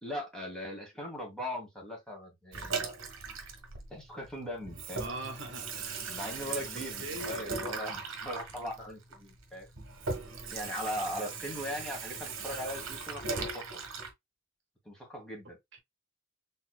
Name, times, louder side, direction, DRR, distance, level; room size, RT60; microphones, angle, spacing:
voice 1, 0.0-3.0 3.9-5.1 6.1-9.7 10.5-13.6 14.9-15.6, equal, 5° left, 1.8 m, -39 dB
Water tap faucet / Sink (filling or washing), 2.5-4.3 4.6-14.1, right 4 dB, 80° right, 1.2 m, -39 dB
voice 2, 4.9-5.8 6.7-7.5 15.7-15.8, right 1 dB, 60° right, 1.4 m, -41 dB
4.4 x 3.7 x 2.2 m
head